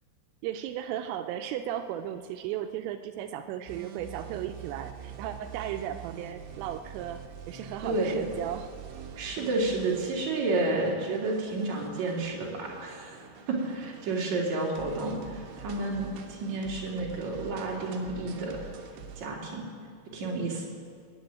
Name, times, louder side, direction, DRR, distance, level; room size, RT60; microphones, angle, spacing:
voice 1, 0.4-8.7, right 11 dB, 85° right, 8 dB, 3.0 m, -35 dB
sound 1, 3.7-19.3, right 7 dB, 65° right, 3.0 m, -45 dB
voice 2, 7.8-8.2 9.2-13.2 13.5-18.6 19.2-19.6 20.1-20.6, right 2 dB, 45° right, -3 dB, 2.9 m, -30 dB
21.0 x 7.5 x 9.2 m, 2.1 s
omnidirectional pair, 6.0 m